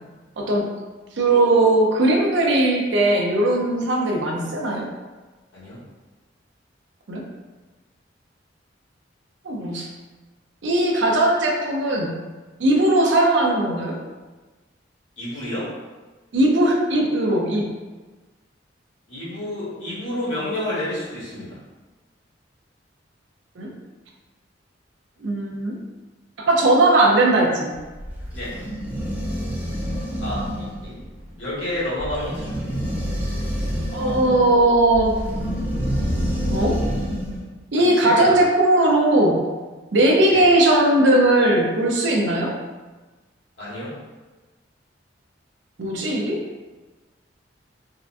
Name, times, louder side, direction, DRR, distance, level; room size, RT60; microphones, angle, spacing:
voice 1, 0.4-0.7 1.2-4.8 7.1-7.2 9.4-9.9 10.6-12.2 12.6-14.0 16.3-17.7 23.6-23.7 25.2-25.8 26.4-27.7 33.9-35.1 36.5-36.8 37.7-39.4 39.9-42.5 45.8-46.4, right 1 dB, 70° right, 0 dB, 0.5 m, -18 dB
voice 2, 15.2-15.7 19.1-21.6 28.3-28.5 30.2-31.0 31.3-32.7 37.8-38.4 40.3-40.4 43.6-43.9, left 1 dB, 75° left, -9 dB, 1.3 m, -30 dB
sound 1, 27.7-37.4, equal, 10° right, 0.5 m, -27 dB
3.7 x 2.2 x 2.5 m, 1.3 s
head